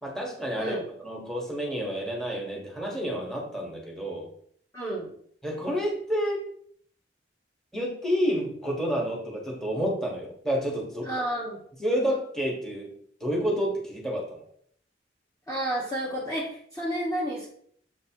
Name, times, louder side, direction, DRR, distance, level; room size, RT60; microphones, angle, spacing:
voice 1, 0.0-4.3 5.4-6.4 7.7-11.1 11.8-12.9 13.2-14.4, equal, ahead, -2 dB, 1.3 m, -29 dB
voice 2, 4.7-5.1 11.0-11.6 15.5-17.5, right 1 dB, 20° left, -5 dB, 1.1 m, -31 dB
7.2 x 3.2 x 4.5 m, 0.63 s
head